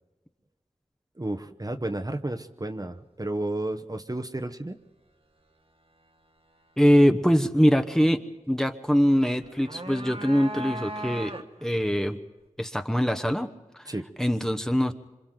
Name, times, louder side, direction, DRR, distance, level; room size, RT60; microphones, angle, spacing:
voice 1, 1.2-4.8 13.9-14.1, right 1 dB, 30° right, 6 dB, 1.0 m, -32 dB
voice 2, 6.8-11.3 11.6-12.2 12.6-13.5 14.2-14.9, equal, 5° left, 7 dB, 1.1 m, -23 dB
sound 1, 9.4-11.7, right 1 dB, 50° right, 1.2 m, -37 dB
26.5 x 26.5 x 3.9 m, 1.1 s
wide cardioid pair, 50°, 13 cm